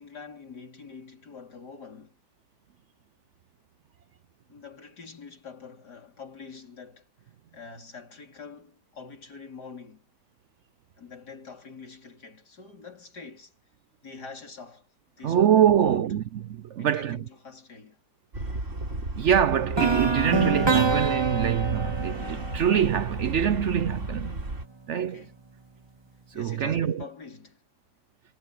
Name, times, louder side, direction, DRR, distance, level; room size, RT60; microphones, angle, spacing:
voice 1, 0.0-2.2 4.5-7.1 7.5-10.1 11.0-13.5 14.0-14.9 15.2-16.1 16.8-18.0 24.9-25.3 26.3-27.6, left 5 dB, 70° left, 4.5 m, -45 dB
voice 2, 15.2-17.2 19.2-24.4 24.9-25.3 26.3-27.0, right 9 dB, 70° right, 0.7 m, -24 dB
sound 1, 18.3-24.7, right 2 dB, 45° right, 4.3 m, -34 dB
sound 2, 19.8-23.7, right 4 dB, 20° right, 0.9 m, -26 dB
omnidirectional pair, 1.8 m